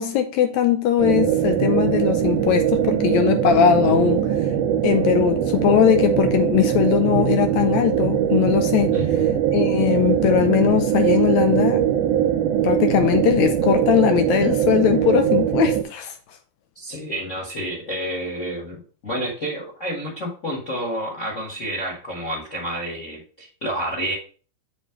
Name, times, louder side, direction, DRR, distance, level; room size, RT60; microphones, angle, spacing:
voice 1, 0.0-4.2 4.8-9.0 9.5-11.8 12.6-16.1, left 10 dB, 80° left, 1.8 m, -20 dB
sound 1, 1.0-15.8, right 10 dB, 85° right, 2.2 m, -21 dB
voice 2, 8.9-9.3 16.7-24.2, right 1 dB, 40° left, 1.2 m, -29 dB
7.2 x 3.2 x 5.6 m
omnidirectional pair, 3.6 m